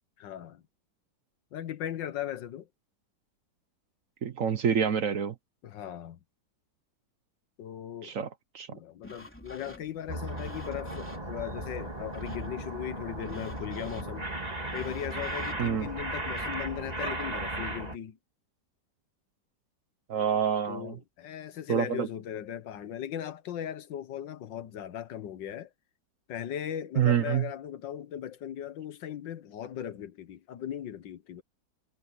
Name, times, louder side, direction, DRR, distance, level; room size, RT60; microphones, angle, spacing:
voice 1, 0.2-0.6 1.5-2.7 5.6-6.2 7.6-8.1 8.7-14.3 14.7-18.2 20.7-25.7 26.3-31.4, left 10 dB, 85° left, 1.7 m, -38 dB
voice 2, 4.2-5.3 8.0-8.3 8.5-8.7 15.6-15.9 20.1-20.9 21.7-22.1 27.0-27.4, right 8 dB, 55° right, 1.1 m, -27 dB
sound 1, 9.0-16.5, left 1 dB, 5° left, 3.6 m, -50 dB
sound 2, 10.1-18.0, right 2 dB, 20° right, 2.6 m, -36 dB
omnidirectional pair, 1.9 m